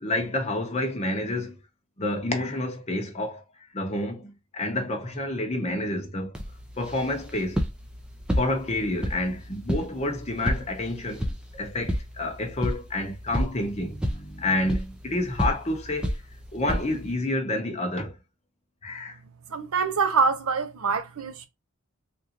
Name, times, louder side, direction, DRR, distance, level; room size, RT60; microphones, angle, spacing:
voice 1, 0.0-1.6 2.0-3.4 3.7-6.3 6.8-7.6 8.4-11.3 11.5-16.2 16.5-18.2 18.8-19.2, left 1 dB, 30° left, 0.8 m, -29 dB
sound 1, 6.3-17.1, equal, 5° right, 0.5 m, -32 dB
voice 2, 19.5-21.5, right 5 dB, 70° right, 0.7 m, -25 dB
3.6 x 2.5 x 2.9 m
head